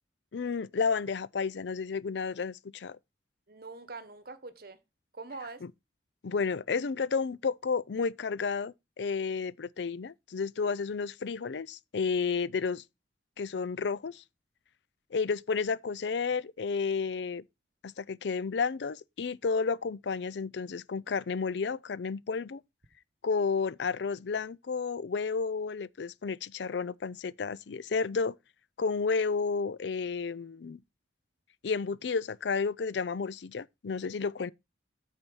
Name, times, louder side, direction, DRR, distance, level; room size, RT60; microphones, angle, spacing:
voice 1, 0.3-3.0 5.6-5.7 6.2-12.8 13.4-14.2 15.1-17.4 17.8-22.6 23.2-28.3 28.8-30.8 31.6-34.5, left 5 dB, 70° left, 0.5 m, -31 dB
voice 2, 3.5-4.8 5.1-5.6, right 3 dB, 55° right, 1.2 m, -43 dB
8.7 x 4.4 x 6.3 m
head